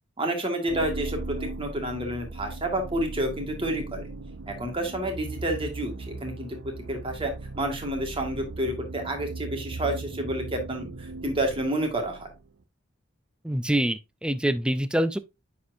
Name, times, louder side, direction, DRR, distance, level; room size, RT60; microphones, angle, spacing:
voice 1, 0.2-4.1 4.5-6.6 6.9-12.3, right 1 dB, 30° right, 1.7 m, -29 dB
sound 1, 0.7-12.5, right 2 dB, 85° right, 0.7 m, -38 dB
voice 2, 13.4-15.2, right 1 dB, 5° right, 0.3 m, -25 dB
9.4 x 4.3 x 2.6 m
head